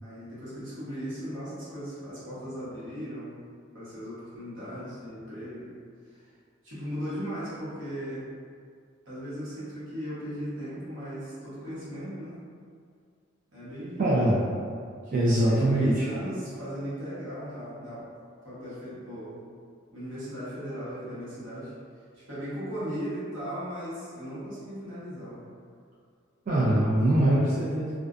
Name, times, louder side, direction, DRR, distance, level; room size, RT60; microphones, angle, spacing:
voice 1, 0.0-3.4 3.7-5.7 6.1-6.3 6.6-8.3 9.0-12.4 13.5-14.6 15.0-18.1 18.4-19.4 19.9-21.7 22.1-25.4, equal, 70° right, -11 dB, 1.1 m, -37 dB
voice 2, 14.0-14.4 15.1-16.0 26.5-28.0, right 1 dB, 45° right, -9 dB, 0.4 m, -23 dB
2.4 x 2.2 x 2.4 m, 2.2 s
head